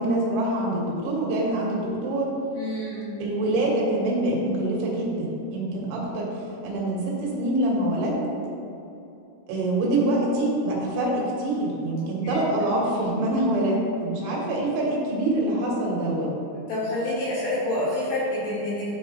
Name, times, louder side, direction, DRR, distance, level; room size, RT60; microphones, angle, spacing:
voice 1, 0.0-2.4 3.2-6.3 6.6-8.2 9.5-16.3, right 1 dB, 75° right, -3 dB, 3.5 m, -25 dB
voice 2, 2.5-3.2 12.1-12.4 16.5-18.9, left 1 dB, 60° left, -10 dB, 3.2 m, -28 dB
12.5 x 4.4 x 3.0 m, 2.8 s
omnidirectional pair, 5.6 m